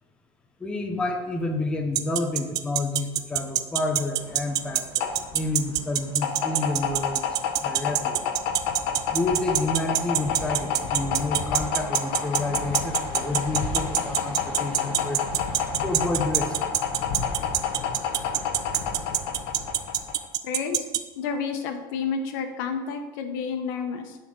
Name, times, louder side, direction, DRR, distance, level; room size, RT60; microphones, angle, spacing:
voice 1, 0.6-8.2 9.1-15.2 15.8-16.6, left 2 dB, 10° left, 4 dB, 0.7 m, -29 dB
sound 1, 1.9-21.0, right 13 dB, 40° right, 0.4 m, -23 dB
sound 2, 4.2-20.3, left 6 dB, 60° left, 1.1 m, -29 dB
voice 2, 20.4-20.8 21.2-24.2, left 5 dB, 85° left, 7 dB, 1.1 m, -30 dB
10.5 x 4.3 x 6.3 m, 1.2 s
cardioid pair, 170°, 11 cm